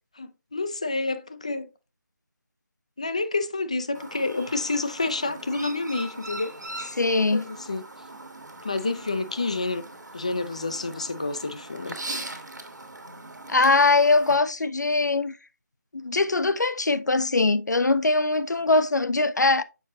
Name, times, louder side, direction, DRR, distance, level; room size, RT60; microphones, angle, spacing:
voice 1, 0.2-1.7 3.0-6.5 7.2-7.8 8.6-9.8 10.1-12.0, left 3 dB, 20° left, 0.3 m, -29 dB
Chirp tweet, 3.9-14.4, right 2 dB, 70° right, 1.6 m, -40 dB
voice 2, 6.9-7.5 13.5-15.3 15.9-19.6, left 3 dB, 65° left, 0.6 m, -22 dB
6.6 x 5.2 x 2.8 m
figure-of-eight pair, 160°, 10 cm